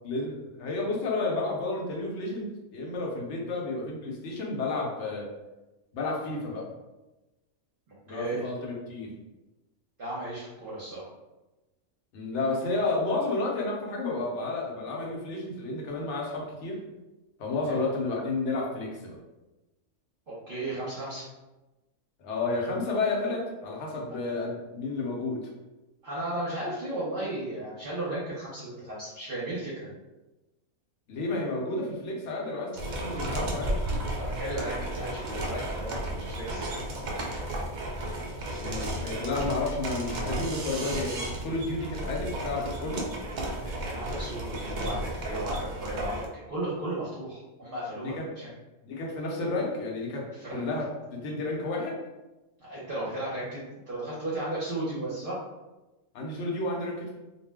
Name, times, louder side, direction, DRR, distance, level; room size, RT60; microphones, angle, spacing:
voice 1, 0.0-5.3 5.9-6.7 8.1-9.1 12.1-16.8 17.4-19.2 22.2-25.5 31.1-33.8 38.6-43.1 48.0-48.2 48.8-52.0 56.1-57.1, left 2 dB, 65° left, -2 dB, 1.0 m, -31 dB
voice 2, 8.1-8.4 10.0-11.1 17.7-17.8 20.3-21.2 26.0-29.9 34.1-36.7 43.6-48.5 50.4-50.7 52.6-55.4, right 1 dB, 50° right, -8 dB, 0.8 m, -35 dB
sound 1, 32.7-46.2, right 1 dB, 85° right, 0.4 m, -33 dB
2.4 x 2.0 x 3.4 m, 1.1 s
omnidirectional pair, 1.4 m